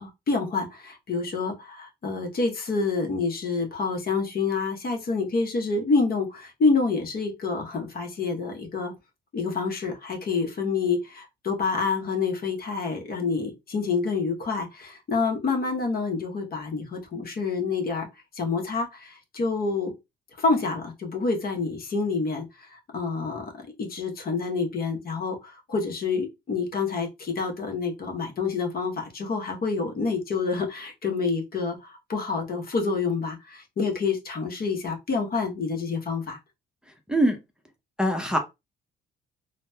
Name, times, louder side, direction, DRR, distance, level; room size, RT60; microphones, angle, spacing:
voice 1, 0.0-8.9 9.3-18.1 18.3-19.9 20.4-36.4, left 4 dB, 50° left, 0.9 m, -28 dB
voice 2, 38.0-38.4, right 1 dB, 5° right, 0.6 m, -22 dB
3.9 x 2.1 x 2.2 m
cardioid pair, 90°, 20 cm